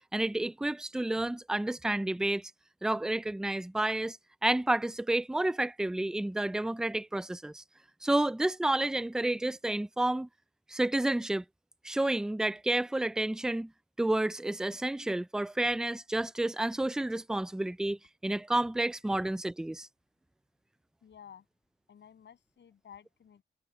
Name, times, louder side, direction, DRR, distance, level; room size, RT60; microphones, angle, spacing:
voice 1, 0.1-2.5 2.8-4.2 4.4-7.6 8.0-10.3 10.7-11.4 11.8-13.7 14.0-18.0 18.2-19.9, right 1 dB, 5° right, 0.4 m, -30 dB
voice 2, 21.0-21.4 21.9-23.4, left 8 dB, 70° left, 7.9 m, -53 dB
wide cardioid pair, 115°, 19 cm